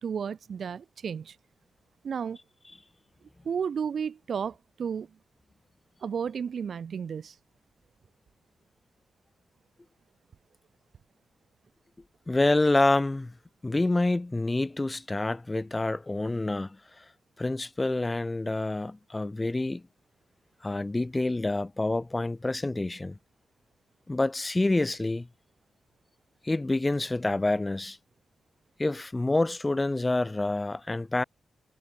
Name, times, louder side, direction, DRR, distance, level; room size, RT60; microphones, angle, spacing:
voice 1, 0.0-1.4 2.0-2.4 3.4-5.1 6.0-7.4, right 7 dB, 65° right, 0.6 m, -32 dB
voice 2, 12.3-13.3 13.6-17.0 17.4-19.8 20.6-23.2 24.1-25.3 26.4-28.0 28.8-31.2, left 2 dB, 25° left, 0.6 m, -27 dB
cardioid pair, 60°, 0 cm